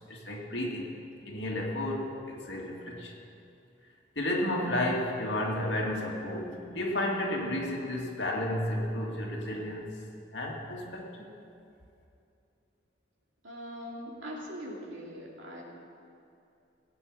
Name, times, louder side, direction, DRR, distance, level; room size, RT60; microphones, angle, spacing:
voice 1, 0.1-0.9 1.2-3.1 4.2-10.0 10.3-11.3, left 1 dB, 70° left, -1 dB, 2.2 m, -32 dB
voice 2, 13.4-15.6, equal, 90° right, -2 dB, 2.7 m, -41 dB
18.0 x 8.9 x 6.3 m, 2.6 s
head